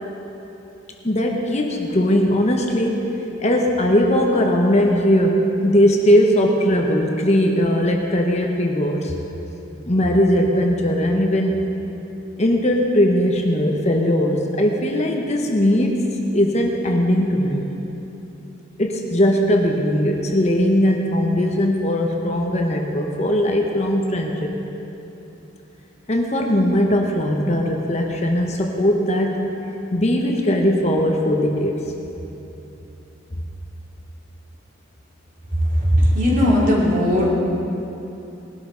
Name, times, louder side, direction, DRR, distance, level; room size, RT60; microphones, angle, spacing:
voice 1, 1.0-3.1 3.4-9.2 9.8-11.6 12.4-16.0 16.3-17.6 18.8-24.5 26.1-29.3 29.9-31.8, equal, 35° left, 1 dB, 1.0 m, -19 dB
voice 2, 35.8-37.3, equal, 45° right, -5 dB, 2.9 m, -17 dB
19.0 x 12.5 x 3.9 m, 3.0 s
head